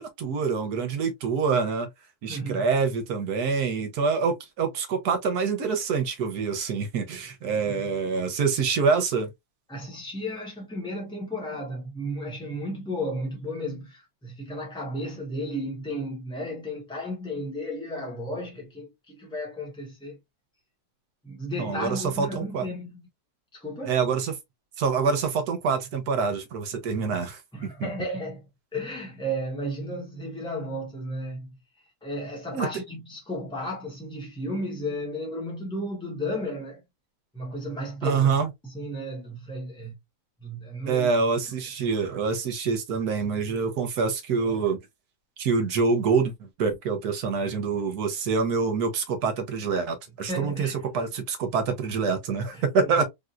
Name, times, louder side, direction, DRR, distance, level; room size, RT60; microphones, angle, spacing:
voice 1, 0.0-1.9 2.2-9.3 21.6-22.7 23.9-24.3 24.8-27.4 27.8-27.9 32.5-32.7 38.0-38.5 40.9-44.8 45.4-50.7 50.9-53.0, right 5 dB, 70° right, 1.3 m, -26 dB
voice 2, 2.3-2.7 7.6-7.9 9.7-20.2 21.2-23.1 23.5-24.0 27.5-28.4 28.7-31.5 32.0-36.8 37.3-39.9 40.4-41.1 50.3-50.8 52.5-53.0, equal, 5° left, 0.4 m, -34 dB
3.5 x 2.7 x 2.4 m
omnidirectional pair, 1.7 m